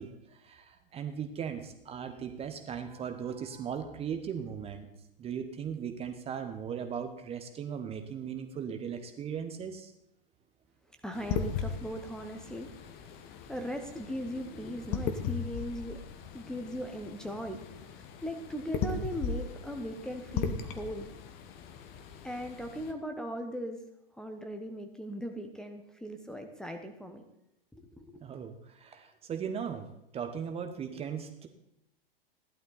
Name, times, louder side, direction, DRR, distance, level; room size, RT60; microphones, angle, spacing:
voice 1, 0.0-4.9 5.2-9.9 28.2-29.9 30.1-31.5, right 7 dB, 20° right, 7 dB, 1.1 m, -38 dB
voice 2, 11.0-12.7 13.2-16.0 16.3-17.6 17.9-21.1 22.2-23.8 24.2-27.2 27.7-28.2, equal, ahead, 5 dB, 1.1 m, -39 dB
sound 1, 11.1-22.9, left 6 dB, 35° left, 1.2 m, -38 dB
15.0 x 11.5 x 4.1 m, 0.83 s
figure-of-eight pair, 100°, 29 cm